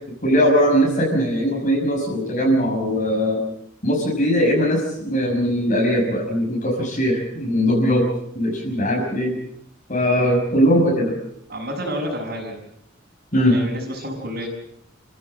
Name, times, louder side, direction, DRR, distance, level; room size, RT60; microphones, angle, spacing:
voice 1, 0.2-3.4 3.8-8.0 8.4-9.4 9.9-11.1 13.3-13.6, equal, 40° left, -1 dB, 5.9 m, -20 dB
voice 2, 11.5-12.6 13.4-14.5, equal, 45° right, -4 dB, 5.8 m, -29 dB
29.5 x 15.5 x 7.6 m, 0.74 s
head